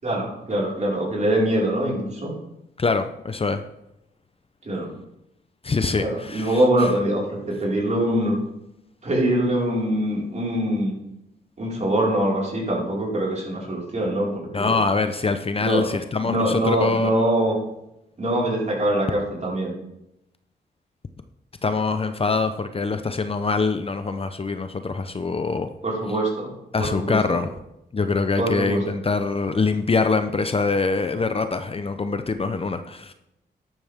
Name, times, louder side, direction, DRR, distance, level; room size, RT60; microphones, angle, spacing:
voice 1, 0.0-2.3 4.6-4.9 6.0-8.3 9.0-10.9 11.6-14.8 15.6-15.9 16.2-17.5 18.2-19.7 25.8-26.5 26.8-27.2 28.4-28.8, right 1 dB, 40° right, 5.0 m, -23 dB
voice 2, 2.8-3.6 5.6-6.9 14.5-17.1 21.6-25.7 26.7-27.5 27.9-33.1, left 4 dB, 30° left, 0.7 m, -24 dB
12.5 x 10.5 x 3.6 m
cardioid pair, 95°, 18 cm